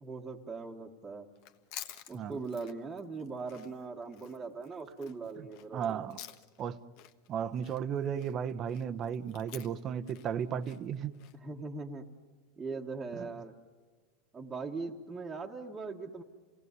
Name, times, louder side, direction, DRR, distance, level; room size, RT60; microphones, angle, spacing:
voice 1, 0.0-1.3 2.1-6.1 11.3-12.0 12.6-13.5 14.3-16.2, right 4 dB, 10° right, 1.4 m, -40 dB
Chewing mastication, 1.3-6.7 7.0-11.4, left 11 dB, 50° left, 1.4 m, -51 dB
voice 2, 5.7-6.2 6.6-6.8 7.3-11.1, right 8 dB, 30° right, 0.9 m, -34 dB
29.0 x 18.5 x 9.5 m
supercardioid pair, 160°, 0 cm